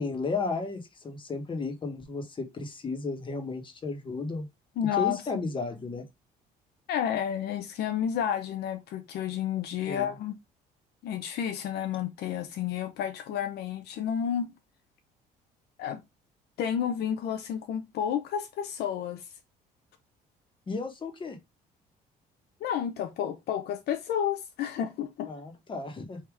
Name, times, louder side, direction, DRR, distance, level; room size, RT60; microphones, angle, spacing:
voice 1, 0.0-4.5 5.0-6.1 9.9-10.1 20.7-21.4 25.3-26.2, left 3 dB, 30° left, 1.3 m, -34 dB
voice 2, 4.8-5.4 6.9-10.4 11.0-14.5 15.8-16.0 16.6-19.3 22.6-25.3, left 9 dB, 70° left, 0.6 m, -31 dB
3.5 x 2.8 x 4.7 m
cardioid pair, 110°, 17 cm